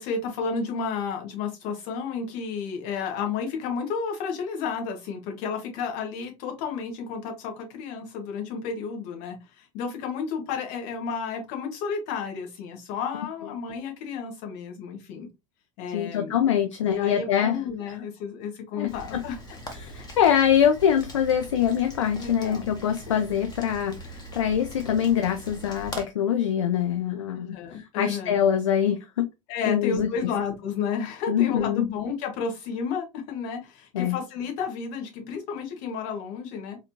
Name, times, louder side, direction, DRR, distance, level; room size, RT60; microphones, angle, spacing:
voice 1, 0.0-15.3 15.8-16.4 16.8-19.4 22.2-22.7 27.5-28.4 29.5-36.8, left 6 dB, 50° left, 1.6 m, -32 dB
voice 2, 15.9-17.6 18.7-18.9 19.7-29.3 29.7-30.3 31.3-31.9 33.9-34.2, left 9 dB, 70° left, 0.5 m, -24 dB
Rain, 18.9-26.0, equal, 25° left, 1.4 m, -41 dB
4.0 x 2.9 x 2.8 m
figure-of-eight pair, 75°, 16 cm